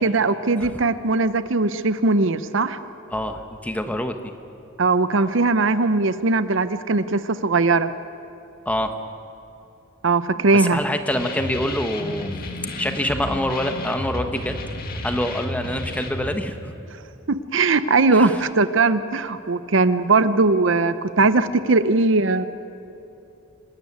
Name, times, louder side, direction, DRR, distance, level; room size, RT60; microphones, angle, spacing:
voice 1, 0.0-2.8 4.8-7.9 10.0-10.8 17.3-22.5, right 3 dB, 65° right, 13 dB, 0.7 m, -19 dB
voice 2, 3.1-4.3 8.6-8.9 10.5-12.3 12.8-14.6 15.0-16.7 18.1-18.5, left 1 dB, 5° left, 6 dB, 1.2 m, -26 dB
sound 1, 11.1-16.3, left 2 dB, 45° left, 1.9 m, -32 dB
26.0 x 13.0 x 9.5 m, 2.9 s
head